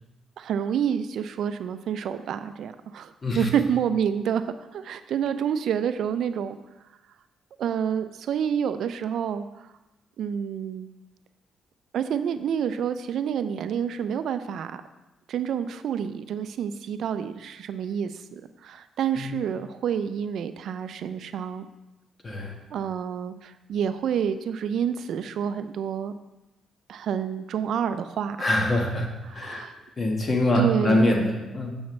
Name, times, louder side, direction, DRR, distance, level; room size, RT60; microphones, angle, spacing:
voice 1, 0.4-4.4 4.7-6.6 7.6-9.5 10.2-10.9 11.9-14.8 15.3-21.7 22.7-26.1 26.9-28.4 29.3-29.7 30.6-31.2, right 8 dB, 70° right, 11 dB, 0.4 m, -28 dB
voice 2, 22.2-22.6 28.4-29.6 30.0-31.7, left 1 dB, 35° left, 1 dB, 1.4 m, -24 dB
7.2 x 7.1 x 3.2 m, 1.0 s
cardioid pair, 90°, 0 cm